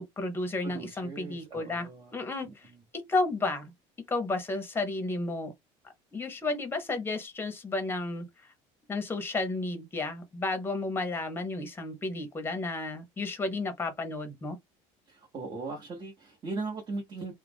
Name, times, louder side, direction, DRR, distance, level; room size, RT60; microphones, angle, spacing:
voice 1, 0.0-3.7 4.1-5.5 6.1-8.2 8.9-14.6, left 2 dB, 15° left, 0.8 m, -32 dB
voice 2, 0.6-2.2 2.5-2.8 15.1-17.3, right 3 dB, 30° right, 1.0 m, -39 dB
2.4 x 2.1 x 3.4 m
cardioid pair, 125°, 14 cm